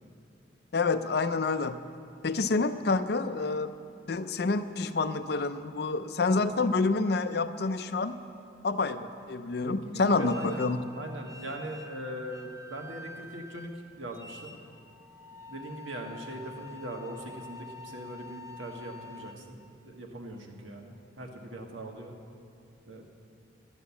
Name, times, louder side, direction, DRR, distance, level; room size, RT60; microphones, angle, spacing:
voice 1, 0.7-1.8 2.2-3.7 4.1-8.1 8.6-10.8, left 3 dB, 55° left, 11 dB, 0.5 m, -28 dB
voice 2, 9.6-10.6 10.9-14.6 15.5-19.6 19.8-22.1 22.9-23.0, right 1 dB, 85° right, 2 dB, 1.5 m, -41 dB
sound 1, 10.1-19.3, left 2 dB, 20° right, 0.7 m, -47 dB
12.0 x 9.5 x 7.1 m, 2.5 s
head